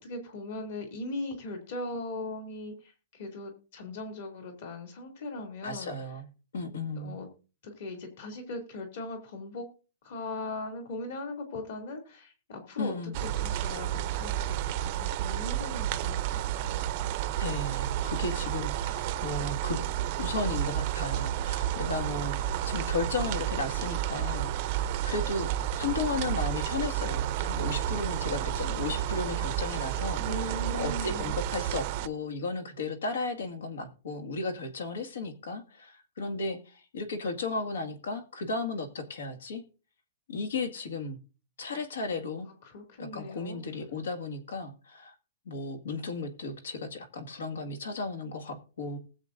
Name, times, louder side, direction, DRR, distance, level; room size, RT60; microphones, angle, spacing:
voice 1, 0.0-5.9 7.0-7.3 7.6-9.6 10.0-12.9 13.2-16.8 30.2-31.3 42.7-43.6, left 2 dB, 45° left, 2.7 m, -39 dB
voice 2, 5.6-6.3 6.5-7.2 12.8-13.2 17.4-19.8 20.2-24.5 25.0-30.2 30.7-39.6 40.3-41.2 41.6-42.5 43.0-45.1 45.5-49.0, left 3 dB, 85° left, 1.9 m, -34 dB
sound 1, 13.1-32.1, right 11 dB, 30° right, 0.5 m, -31 dB
19.5 x 7.5 x 2.6 m
hypercardioid pair, 180°, 0 cm